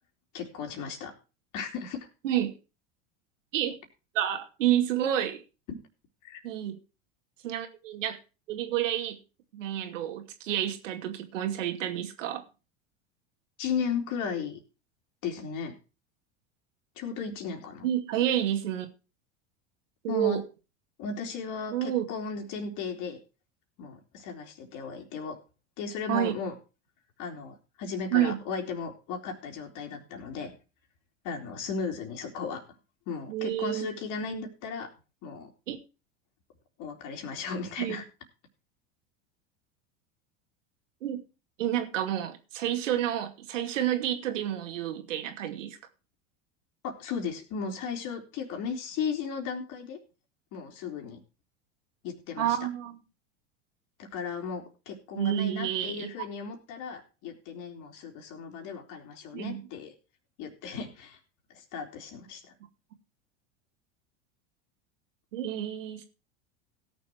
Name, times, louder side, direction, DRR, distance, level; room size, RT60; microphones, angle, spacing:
voice 1, 0.3-1.1 1.5-2.1 6.2-6.4 13.6-14.6 15.2-15.7 17.0-17.9 20.1-20.4 21.0-23.2 23.8-25.4 25.8-26.5 27.2-30.5 31.2-32.6 33.1-34.9 35.2-35.5 36.8-38.0 46.8-50.0 50.5-51.2 52.0-52.6 54.0-59.9 60.4-61.2 61.5-62.4, left 5 dB, 55° left, 3.9 m, -35 dB
voice 2, 2.2-2.6 3.5-3.7 4.1-5.4 6.4-6.8 7.4-8.2 8.5-9.2 9.5-12.4 17.8-18.9 20.0-20.4 21.7-22.0 26.1-26.3 28.1-28.4 33.3-33.9 35.7-35.8 37.8-38.0 41.0-41.2 41.6-45.8 52.4-53.0 55.1-56.1 59.3-59.6 65.3-66.0, right 11 dB, 75° right, 2.5 m, -29 dB
17.0 x 7.0 x 4.7 m
hypercardioid pair, 90°, 37 cm